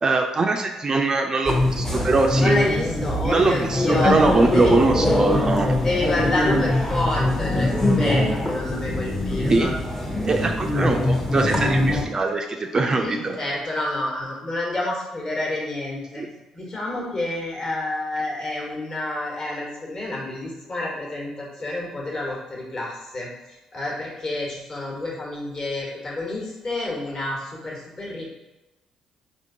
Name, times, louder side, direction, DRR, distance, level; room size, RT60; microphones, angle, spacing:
voice 1, 0.0-2.5 3.2-5.7 9.5-9.7 10.3-13.4 16.2-16.3, right 3 dB, 35° right, 4 dB, 0.3 m, -22 dB
sound 1, 1.5-12.0, left 1 dB, 20° left, 0.7 m, -23 dB
voice 2, 2.3-4.2 4.5-4.7 5.7-9.7 12.9-16.2 16.5-23.3 23.7-28.3, left 2 dB, 40° left, -3 dB, 1.2 m, -28 dB
3.5 x 2.5 x 2.7 m, 1.0 s
figure-of-eight pair, 45°, 2 cm